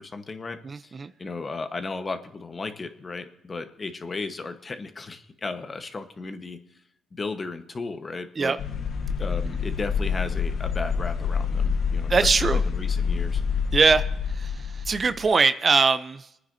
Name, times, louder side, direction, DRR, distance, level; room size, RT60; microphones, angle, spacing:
voice 1, 0.0-6.6 7.1-8.6 9.2-12.3 12.7-13.4, left 3 dB, 30° left, 8 dB, 1.2 m, -35 dB
voice 2, 0.6-1.1 8.4-8.6 12.1-12.6 13.7-14.0 14.3-16.4, right 4 dB, 35° right, 12 dB, 0.6 m, -22 dB
sound 1, 8.6-15.2, left 6 dB, 65° left, 1.0 m, -27 dB
27.5 x 9.6 x 2.7 m, 0.81 s
cardioid pair, 90°, 0 cm